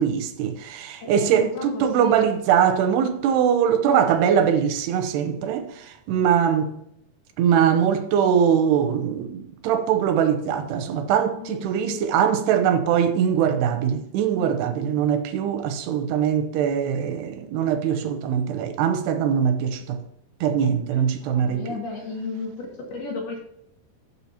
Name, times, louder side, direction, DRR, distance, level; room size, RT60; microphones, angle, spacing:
voice 1, 0.0-6.7 7.4-20.0 20.4-21.7, right 8 dB, 85° right, 2.9 m, -22 dB
voice 2, 1.0-2.2 11.4-12.0 20.9-22.6 22.9-23.4, left 3 dB, 70° left, 4.1 m, -34 dB
13.5 x 7.1 x 2.9 m
omnidirectional pair, 4.7 m